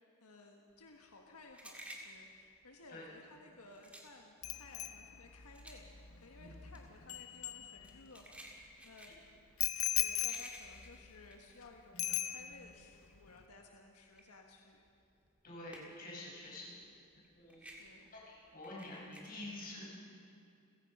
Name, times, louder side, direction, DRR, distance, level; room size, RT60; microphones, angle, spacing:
voice 1, 0.0-9.3 10.0-14.8 16.5-16.8 17.6-18.1, left 3 dB, 90° left, 2 dB, 1.6 m, -58 dB
sound 1, 0.8-12.4 12.8-16.2 16.5-19.3, right 1 dB, 5° right, 1.8 m, -55 dB
Bicycle bell, 4.4-8.3 9.6-11.6 12.0-12.9 13.1-13.4, left 12 dB, 65° left, 0.8 m, -39 dB
voice 2, 15.4-16.7 17.3-17.6 18.1-19.9, left 1 dB, 40° left, -4 dB, 5.8 m, -48 dB
30.0 x 16.0 x 5.6 m, 2.6 s
head